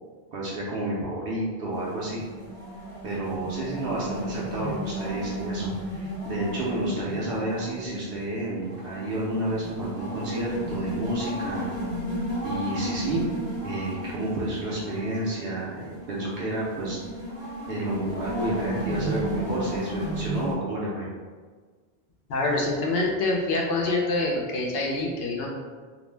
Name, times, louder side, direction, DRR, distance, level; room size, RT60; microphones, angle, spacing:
voice 1, 0.3-2.2 3.0-11.7 12.4-13.3 13.6-17.0 17.7-21.1, right 1 dB, 70° right, -6 dB, 0.7 m, -30 dB
sound 1, 1.7-20.5, right 1 dB, 35° left, 0.8 m, -34 dB
voice 2, 22.3-25.5, left 2 dB, 75° left, -1 dB, 0.8 m, -26 dB
2.4 x 2.0 x 3.2 m, 1.5 s
omnidirectional pair, 1.0 m